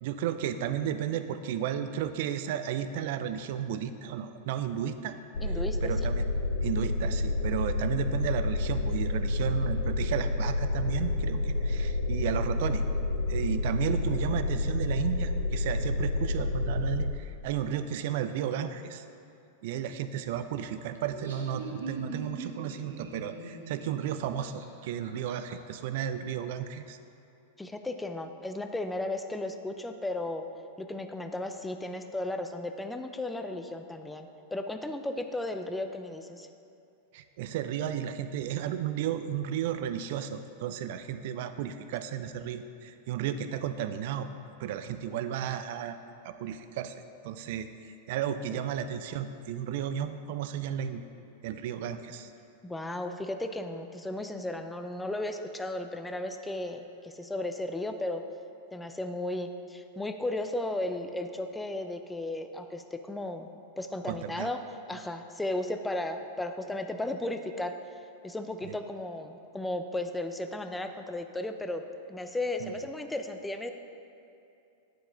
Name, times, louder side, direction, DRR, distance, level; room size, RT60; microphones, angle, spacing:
voice 1, 0.0-5.2 5.8-6.2 6.6-12.8 13.3-19.0 19.6-27.0 37.1-44.3 44.6-46.0 46.2-46.9 47.2-51.0 51.4-52.3 64.1-64.5 68.6-68.8 72.6-72.7, right 9 dB, 60° right, 10 dB, 0.4 m, -33 dB
sound 1, 5.3-17.1, left 2 dB, 75° left, 0.5 m, -29 dB
voice 2, 5.4-5.9 27.6-30.4 30.8-36.5 48.5-48.6 52.6-58.2 58.7-63.5 63.8-64.6 64.9-67.7 68.2-71.8 72.1-73.7, left 1 dB, 10° left, 7 dB, 0.4 m, -35 dB
Laughter, 21.0-25.5, right 4 dB, 80° right, 0.9 m, -41 dB
9.0 x 4.8 x 3.8 m, 2.7 s
hypercardioid pair, 105°, 0 cm